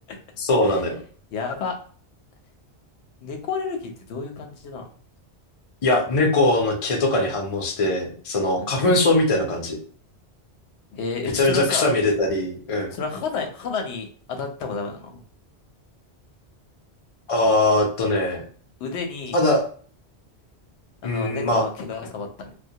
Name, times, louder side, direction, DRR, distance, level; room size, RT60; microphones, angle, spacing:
voice 1, 0.4-1.0 5.8-9.8 11.3-12.9 17.3-18.4 19.3-19.6 21.0-21.6, left 2 dB, 45° left, 1 dB, 0.5 m, -21 dB
voice 2, 1.3-1.7 3.2-4.8 8.6-8.8 10.9-11.9 12.9-15.2 18.8-19.4 21.0-22.5, left 5 dB, 85° left, 4 dB, 0.9 m, -31 dB
2.2 x 2.1 x 2.7 m, 0.44 s
omnidirectional pair, 1.1 m